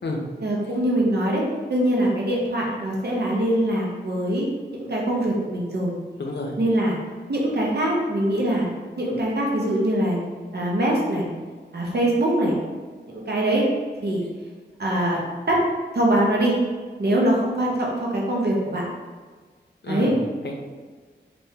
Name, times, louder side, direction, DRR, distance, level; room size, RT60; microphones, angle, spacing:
voice 1, 0.4-1.4 1.7-4.4 4.7-5.9 6.6-7.0 7.3-8.7 9.0-10.2 10.5-11.3 11.7-12.6 13.1-13.7 14.0-14.2 14.8-15.2 15.5-15.6 15.9-16.6 17.0-18.8 19.9-20.1, right 1 dB, 60° right, -3 dB, 0.8 m, -23 dB
voice 2, 6.2-6.5 19.8-20.6, left 2 dB, 65° left, 1 dB, 0.6 m, -30 dB
3.5 x 2.6 x 2.7 m, 1.5 s
wide cardioid pair, 65°, 19 cm